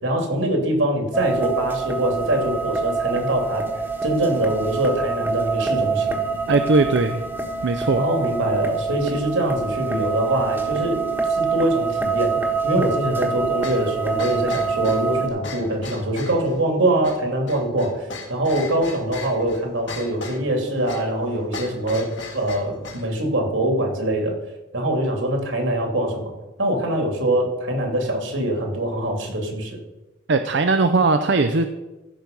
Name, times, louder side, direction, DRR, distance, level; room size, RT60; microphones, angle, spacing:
voice 1, 0.0-3.6 4.0-6.2 8.0-11.0 11.3-22.1 22.3-24.3 24.7-26.3 26.6-29.8, right 1 dB, 80° right, 2 dB, 2.9 m, -23 dB
sound 1, 1.1-15.3, right 4 dB, 10° right, 1.2 m, -25 dB
voice 2, 6.5-7.2 7.6-8.0 30.3-31.7, right 3 dB, 60° right, 8 dB, 0.5 m, -19 dB
sound 2, 13.6-23.1, left 3 dB, 65° left, 2.1 m, -37 dB
15.0 x 6.2 x 5.4 m, 1.1 s
head